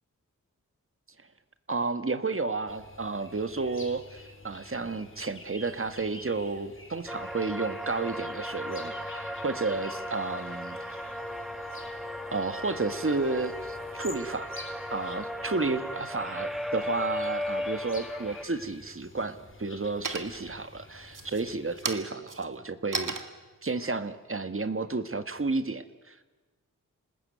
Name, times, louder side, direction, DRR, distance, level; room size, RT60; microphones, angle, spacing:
voice 1, 1.7-11.1 12.3-14.5 14.9-23.1 23.6-26.2, right 3 dB, 40° right, 10 dB, 1.7 m, -32 dB
sound 1, 2.7-21.9, left 2 dB, 40° left, 3.0 m, -49 dB
sound 2, 7.1-18.4, left 1 dB, ahead, 1.8 m, -36 dB
sound 3, 18.4-19.0 19.4-19.8 20.0-20.6 21.1-25.5, right 4 dB, 70° right, 2.0 m, -37 dB
27.0 x 19.5 x 9.4 m, 1.3 s
wide cardioid pair, 65°, 33 cm